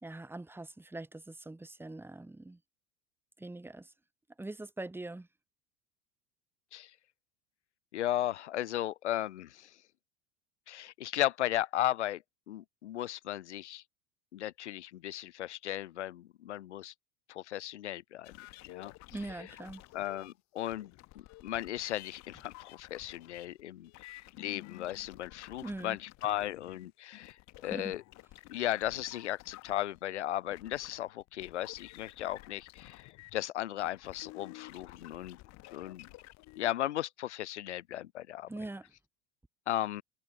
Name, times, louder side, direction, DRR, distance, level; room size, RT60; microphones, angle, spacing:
voice 1, 0.0-2.6 3.4-3.9 4.4-5.3 19.1-19.8 25.6-26.0 27.7-27.9 38.5-38.9, right 2 dB, 5° right, 1.8 m, -42 dB
voice 2, 7.9-9.7 10.7-12.2 12.5-13.8 14.3-16.9 17.3-18.3 18.6-18.9 19.9-28.0 28.5-35.4 35.7-36.1 36.5-38.5 39.7-40.0, left 13 dB, 85° left, 1.5 m, -36 dB
sound 1, 18.2-33.4 33.8-36.7, left 20 dB, 50° left, 1.8 m, -52 dB
hypercardioid pair, 85°, 34 cm